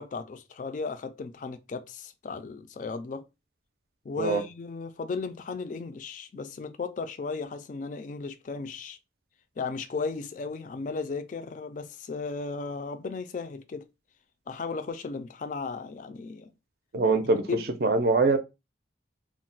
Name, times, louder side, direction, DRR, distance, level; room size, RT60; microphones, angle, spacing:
voice 1, 0.0-3.3 4.1-9.0 9.6-13.8 14.5-16.5 17.5-17.6, left 4 dB, 45° left, 0.3 m, -35 dB
voice 2, 16.9-17.4 17.8-18.4, right 3 dB, 55° right, 0.4 m, -22 dB
2.3 x 2.1 x 3.8 m
head